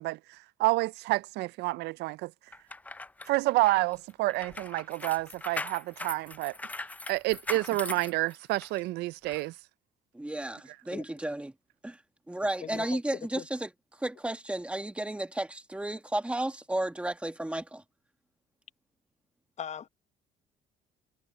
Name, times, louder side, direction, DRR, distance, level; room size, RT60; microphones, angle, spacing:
voice 1, 0.0-2.3 3.3-6.6 7.1-9.5, right 20 dB, 80° right, 0.4 m, -29 dB
sound 1, 2.5-8.8 9.3-9.4, left 2 dB, 10° left, 0.4 m, -40 dB
voice 2, 10.1-11.5 11.8-12.0 12.3-13.7 14.0-17.8, right 1 dB, 5° right, 1.5 m, -33 dB
voice 3, 12.4-13.0 13.3-13.5 19.6-19.9, left 8 dB, 45° left, 1.0 m, -40 dB
cardioid pair, 110°, 17 cm